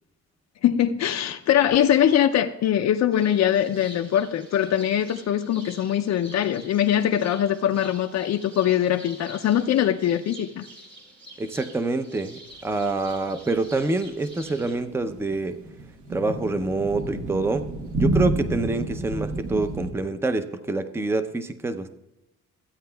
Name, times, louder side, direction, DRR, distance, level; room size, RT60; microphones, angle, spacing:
voice 1, 0.6-10.6, left 10 dB, 60° left, 6 dB, 0.5 m, -22 dB
sound 1, 3.1-14.8, right 1 dB, 40° right, 4.0 m, -47 dB
voice 2, 11.4-15.6 16.1-17.7 17.9-21.9, right 2 dB, 10° right, 10 dB, 0.5 m, -26 dB
sound 2, 14.5-19.9, right 2 dB, 70° right, 1.2 m, -29 dB
15.0 x 8.5 x 2.3 m, 0.93 s
cardioid pair, 90°, 30 cm